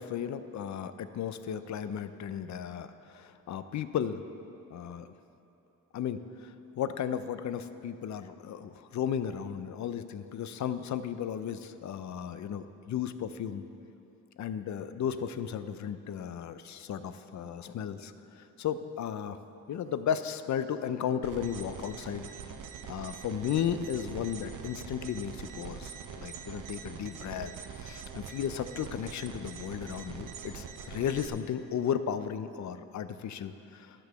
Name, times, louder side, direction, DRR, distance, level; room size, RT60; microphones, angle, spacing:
voice 1, 0.0-4.2 4.7-5.1 5.9-13.6 14.4-19.4 19.7-22.3 22.8-34.1, left 8 dB, 55° left, 12 dB, 0.5 m, -35 dB
sound 1, 21.2-31.3, right 7 dB, 60° right, 0.7 m, -44 dB
9.9 x 6.1 x 6.6 m, 2.8 s
wide cardioid pair, 135°, 35 cm